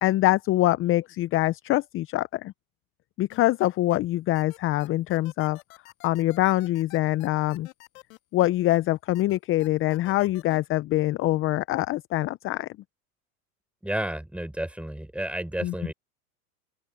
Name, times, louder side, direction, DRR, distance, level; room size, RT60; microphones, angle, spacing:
voice 1, 0.0-2.5 3.2-5.6 6.0-7.7 8.3-12.7 15.6-15.9, left 16 dB, 30° left, 0.7 m, -24 dB
sound 1, 3.3-4.0 4.3-8.8 9.1-10.6, left 20 dB, 60° left, 2.6 m, -48 dB
voice 2, 13.8-15.9, right 1 dB, 5° right, 4.1 m, -31 dB
open air
hypercardioid pair, 105°, 46 cm